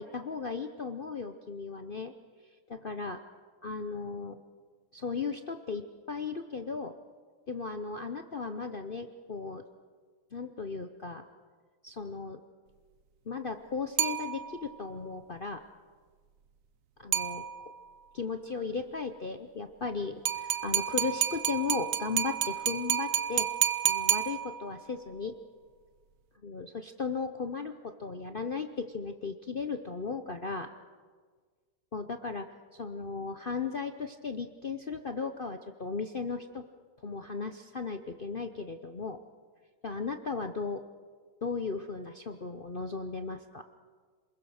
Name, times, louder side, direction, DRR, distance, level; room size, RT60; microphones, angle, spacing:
voice 1, 0.0-2.1 2.7-3.2 3.6-4.4 4.9-7.0 7.5-9.6 10.3-11.2 11.8-12.4 13.3-15.6 17.0-17.5 18.1-23.5 23.8-25.4 26.4-30.7 31.9-32.5 32.7-36.6 37.0-39.2 39.8-40.8 41.4-43.6, left 4 dB, 60° left, 7 dB, 0.5 m, -36 dB
sound 1, 14.0-14.8 17.1-17.9 20.3-24.9, right 10 dB, 55° right, 1.0 m, -30 dB
27.5 x 21.0 x 6.5 m, 1.5 s
omnidirectional pair, 2.1 m